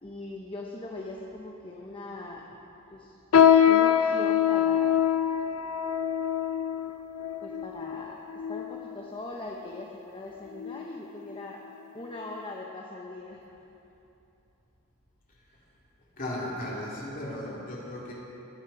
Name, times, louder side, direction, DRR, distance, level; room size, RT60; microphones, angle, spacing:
voice 1, 0.0-2.4 2.9-3.2 3.6-5.0 7.4-11.6 11.9-13.4, left 2 dB, 25° left, -2 dB, 0.9 m, -40 dB
sound 1, 3.3-9.0 9.7-9.8 10.5-10.8 11.2-11.4 12.1-12.2, left 8 dB, 90° left, 0.5 m, -24 dB
voice 2, 16.2-18.1, left 1 dB, 40° left, -5 dB, 2.9 m, -35 dB
20.5 x 7.4 x 5.7 m, 2.9 s
head